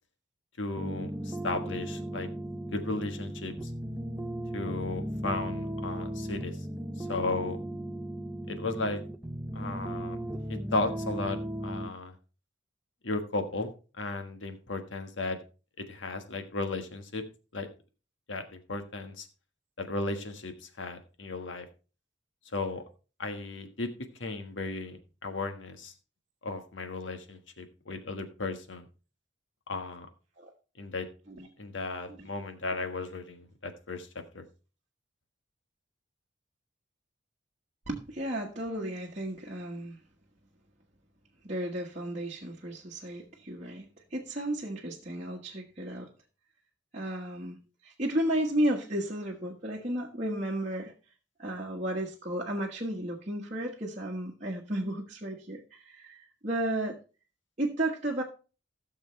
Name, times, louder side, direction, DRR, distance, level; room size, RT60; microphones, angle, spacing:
voice 1, 0.6-2.3 2.7-3.5 4.5-6.5 7.0-7.6 8.5-9.0 9.5-10.2 10.5-12.1 13.0-13.7 14.0-15.4 15.9-17.2 17.5-17.7 18.3-19.3 19.8-21.7 22.5-22.8 23.2-23.9 24.2-25.9 26.4-28.8 29.7-30.1 30.8-31.1 31.6-34.1 34.3-34.4, left 3 dB, 85° left, 7 dB, 1.5 m, -35 dB
sound 1, 0.8-11.9, right 1 dB, 10° right, 0.7 m, -36 dB
voice 2, 37.9-40.0 41.4-46.1 46.9-47.6 47.8-50.9 51.4-57.0 57.6-58.2, right 1 dB, 35° right, -3 dB, 1.3 m, -33 dB
16.0 x 6.7 x 3.2 m, 0.34 s
head